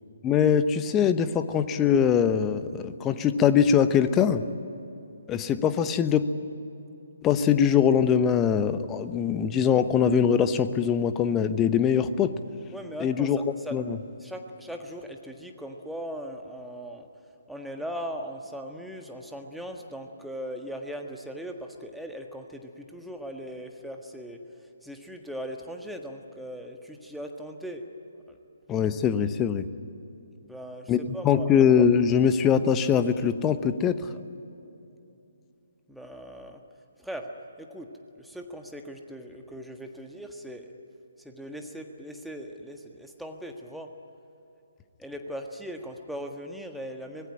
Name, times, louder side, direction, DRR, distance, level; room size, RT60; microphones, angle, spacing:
voice 1, 0.2-4.4 5.3-6.3 7.2-12.3 13.0-13.4 13.7-14.0 28.7-29.7 30.9-31.0 31.2-34.1, left 8 dB, 15° left, 11 dB, 1.0 m, -22 dB
voice 2, 12.7-13.8 14.2-17.1 17.5-24.4 24.8-27.8 28.1-28.4 30.4-31.5 35.9-36.6 37.0-37.3 37.6-37.9 38.2-40.7 41.2-43.9 45.0-47.3, equal, ahead, 3 dB, 1.6 m, -39 dB
25.0 x 20.5 x 10.0 m, 2.9 s
figure-of-eight pair, 135°, 0 cm